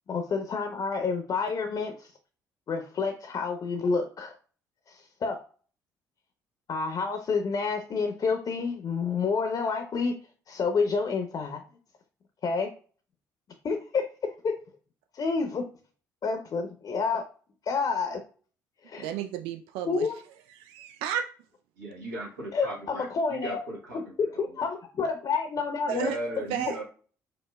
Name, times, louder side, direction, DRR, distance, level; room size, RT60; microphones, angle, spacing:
voice 1, 0.1-2.1 2.7-4.4 4.9-5.4 6.7-10.1 10.5-11.6 12.4-12.7 13.6-14.0 14.4-14.5 15.1-15.6 16.2-17.2 17.7-18.2 18.9-19.1 19.9-20.1 22.5-23.6 24.2-26.1, left 4 dB, 45° left, 0.7 m, -29 dB
voice 2, 19.0-20.1 20.6-21.3 25.9-26.2 26.5-26.8, right 10 dB, 70° right, 0.4 m, -32 dB
voice 3, 21.7-24.6 25.9-26.8, right 1 dB, 85° right, 1.3 m, -37 dB
5.1 x 2.1 x 2.3 m
hypercardioid pair, 50°, 10 cm